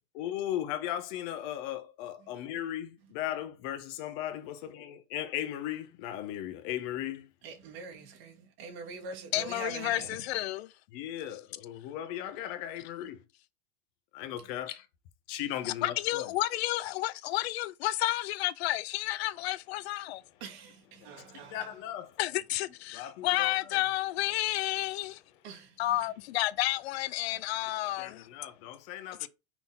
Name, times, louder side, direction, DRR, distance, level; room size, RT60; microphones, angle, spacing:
voice 1, 0.1-7.3 10.9-13.3 14.1-14.9 15.3-16.3 20.0-20.5 20.9-22.2 22.9-23.8 25.3-25.4 27.4-29.3, left 12 dB, 60° left, 1.3 m, -37 dB
voice 2, 7.4-10.1 20.4-21.6 25.4-25.7, right 5 dB, 65° right, 2.6 m, -43 dB
voice 3, 9.3-10.7 15.7-20.2 22.2-25.2 25.8-28.3 29.2-29.3, left 16 dB, 75° left, 0.6 m, -31 dB
5.8 x 4.0 x 4.3 m
supercardioid pair, 120°, 32 cm